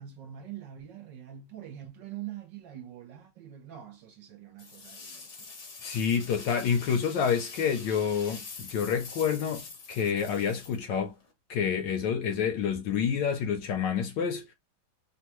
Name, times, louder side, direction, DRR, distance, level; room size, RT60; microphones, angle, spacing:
voice 1, 0.0-5.6, right 11 dB, 65° right, 1.3 m, -44 dB
sound 1, 4.6-11.3, left 4 dB, 55° left, 0.8 m, -45 dB
voice 2, 5.8-11.1 11.5-14.5, left 7 dB, 70° left, 1.2 m, -28 dB
3.6 x 2.3 x 2.9 m
omnidirectional pair, 2.3 m